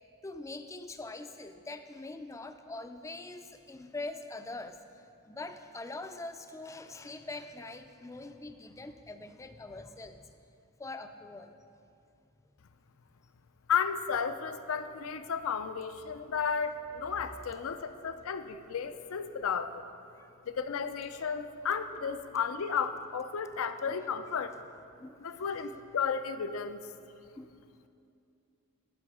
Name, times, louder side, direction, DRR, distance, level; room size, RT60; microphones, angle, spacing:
voice 1, 0.2-10.2 10.8-11.5 17.2-18.1 20.1-20.3 22.3-22.4 24.0-24.1 25.0-25.2 25.6-25.7 27.4-27.5, left 2 dB, 15° left, 8 dB, 0.3 m, -44 dB
voice 2, 13.7-19.8 20.5-24.5 25.2-26.8, left 6 dB, 75° left, 10 dB, 0.5 m, -33 dB
11.5 x 5.6 x 4.8 m, 2.5 s
head